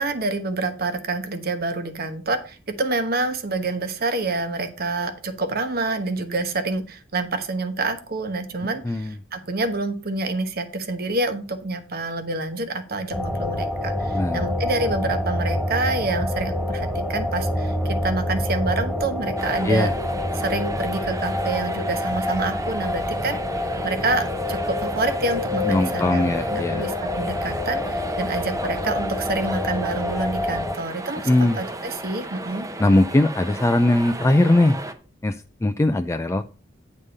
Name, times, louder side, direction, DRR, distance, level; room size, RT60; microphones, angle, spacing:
voice 1, 0.0-19.9 20.3-23.4 23.8-31.3 31.6-32.7, right 3 dB, 50° right, 8 dB, 1.1 m, -27 dB
sound 1, 13.1-30.8, left 1 dB, ahead, 1.9 m, -27 dB
voice 2, 14.1-14.5 19.6-19.9 25.6-26.9 31.3-31.6 32.8-34.8 35.2-36.5, left 1 dB, 15° left, 8 dB, 0.3 m, -20 dB
sound 2, 19.4-34.9, right 2 dB, 20° right, 0.8 m, -35 dB
9.5 x 3.6 x 6.5 m, 0.36 s
head